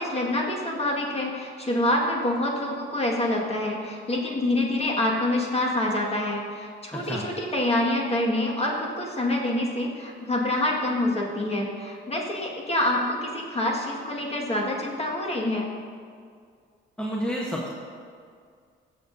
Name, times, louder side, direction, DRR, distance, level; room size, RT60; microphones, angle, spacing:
voice 1, 0.0-15.7, left 1 dB, 30° left, -2 dB, 1.8 m, -26 dB
voice 2, 6.9-7.2 17.0-17.7, equal, 5° left, -3 dB, 1.1 m, -29 dB
15.5 x 7.0 x 2.7 m, 2.2 s
cardioid pair, 90°, 20 cm